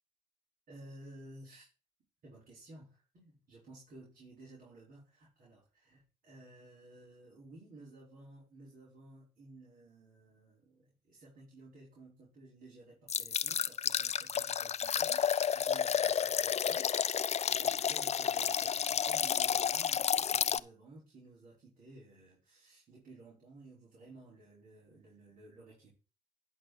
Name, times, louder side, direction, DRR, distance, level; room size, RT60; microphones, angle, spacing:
voice 1, 0.7-1.7 2.2-15.3 15.5-25.9, right 2 dB, 70° right, -6 dB, 5.3 m, -55 dB
sound 1, 13.1-20.6, left 8 dB, 45° left, 0.5 m, -31 dB
11.5 x 5.7 x 5.2 m, 0.34 s
supercardioid pair, 60°, 15 cm